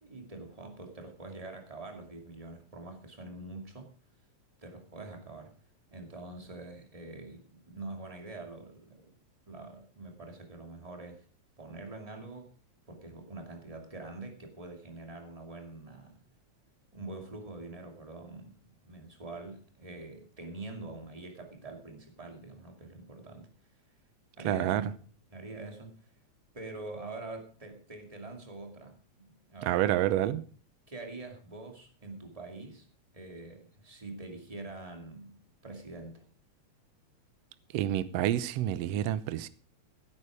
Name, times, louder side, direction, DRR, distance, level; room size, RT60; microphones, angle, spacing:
voice 1, 0.0-3.9 4.6-5.5 5.9-9.1 9.5-11.3 11.6-12.5 12.9-16.2 16.9-23.5 24.4-25.0 25.3-26.1 26.5-29.0 29.3-29.9 30.9-32.9 33.1-35.4 35.6-36.3, right 2 dB, 15° right, 2.2 m, -45 dB
voice 2, 24.5-24.8 29.7-30.4 37.7-39.5, right 12 dB, 70° right, 1.7 m, -28 dB
16.5 x 8.8 x 4.9 m
omnidirectional pair, 3.3 m